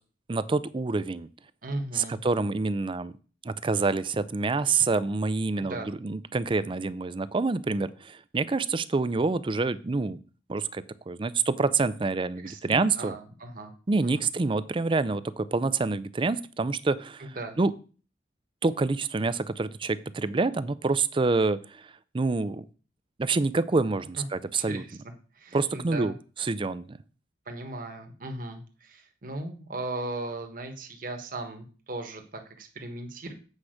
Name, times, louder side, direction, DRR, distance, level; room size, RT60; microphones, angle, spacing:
voice 1, 0.3-1.3 1.9-3.1 3.4-10.2 10.5-13.1 13.9-17.7 18.6-21.8 22.1-22.6 23.2-24.8 25.5-26.1 26.4-26.8, right 3 dB, 30° right, 16 dB, 0.5 m, -27 dB
voice 2, 1.6-2.2 5.6-5.9 12.4-14.2 17.2-17.6 24.2-24.3 24.6-25.0 25.3-26.1 27.5-33.3, right 2 dB, 55° right, 5 dB, 1.4 m, -37 dB
8.5 x 4.9 x 6.4 m, 0.38 s
head